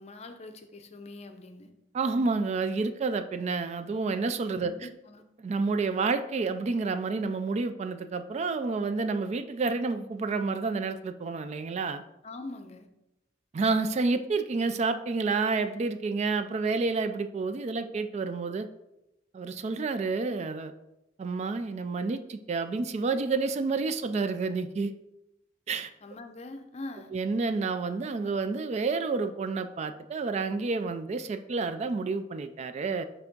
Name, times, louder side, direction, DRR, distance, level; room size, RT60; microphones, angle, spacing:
voice 1, 0.0-1.7 4.6-5.2 12.2-12.9 26.0-27.1, left 2 dB, 35° left, 7 dB, 0.6 m, -43 dB
voice 2, 1.9-4.9 5.4-12.0 13.5-18.7 19.3-20.7 21.2-24.9 25.7-25.9 27.1-33.0, right 4 dB, 35° right, 9 dB, 0.3 m, -29 dB
5.9 x 3.4 x 5.2 m, 0.91 s
head